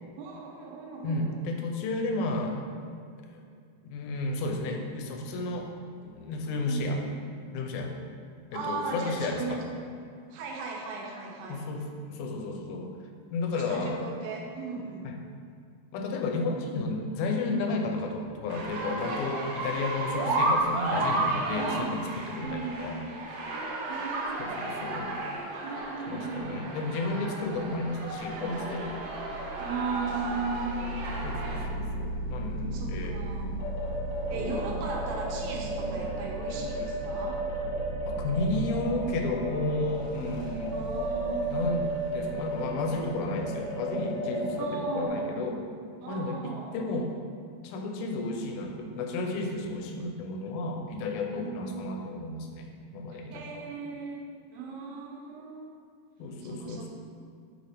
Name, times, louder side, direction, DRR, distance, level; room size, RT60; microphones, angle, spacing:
voice 1, 0.2-1.4 6.6-7.1 8.5-9.6 10.3-11.6 13.5-15.1 20.2-20.4 21.5-21.9 22.4-22.9 23.9-25.0 25.6-26.5 27.4-27.8 29.6-31.0 32.7-33.6 34.3-37.4 40.7-41.5 44.6-45.4 46.0-46.7 51.3-51.7 53.3-54.2 54.5-55.8 56.4-56.9, right 4 dB, 90° right, -1 dB, 2.6 m, -37 dB
voice 2, 1.0-2.6 3.3-3.4 3.8-5.7 6.0-7.0 7.5-7.9 8.5-9.6 11.5-11.8 12.1-12.9 13.3-14.1 15.9-23.0 24.4-25.2 26.1-29.0 31.2-33.2 34.3-34.8 38.1-40.8 41.5-41.9 42.1-45.6 46.1-47.1 47.6-52.7 52.9-53.6 56.2-56.9, left 2 dB, 90° left, 3 dB, 2.4 m, -32 dB
sound 1, 18.5-31.7, right 2 dB, 75° right, 1.5 m, -33 dB
sound 2, 28.2-45.1, right 2 dB, 55° right, 1.8 m, -38 dB
sound 3, 33.6-45.1, right 1 dB, 70° left, 1.3 m, -35 dB
7.7 x 4.3 x 3.5 m, 2.3 s
omnidirectional pair, 4.0 m